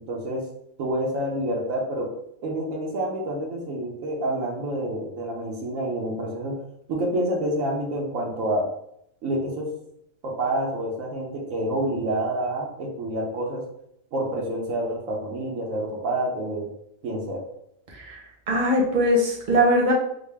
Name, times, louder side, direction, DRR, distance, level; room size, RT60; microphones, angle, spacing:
voice 1, 0.1-0.4 0.8-2.1 2.4-6.6 6.9-8.7 9.2-9.7 10.2-13.6 14.1-16.7 17.0-17.4, right 1 dB, 75° right, -1 dB, 1.1 m, -28 dB
voice 2, 18.5-19.9, equal, 40° right, -1 dB, 0.9 m, -21 dB
3.8 x 2.2 x 3.2 m, 0.74 s
omnidirectional pair, 1.4 m